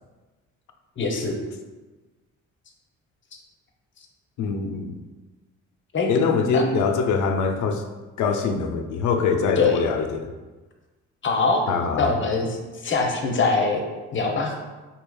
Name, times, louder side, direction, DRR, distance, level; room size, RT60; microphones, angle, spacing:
voice 1, 1.0-1.4 5.9-6.1 6.5-6.6 9.6-9.8 11.2-11.6 12.0-12.6 12.8-13.9 14.1-14.5, left 4 dB, 40° left, 2 dB, 0.7 m, -22 dB
voice 2, 4.4-5.0 6.1-7.8 8.2-10.3 11.7-12.2, left 5 dB, 75° left, 5 dB, 0.5 m, -23 dB
4.7 x 2.8 x 2.3 m, 1.2 s
cardioid pair, 90°, 30 cm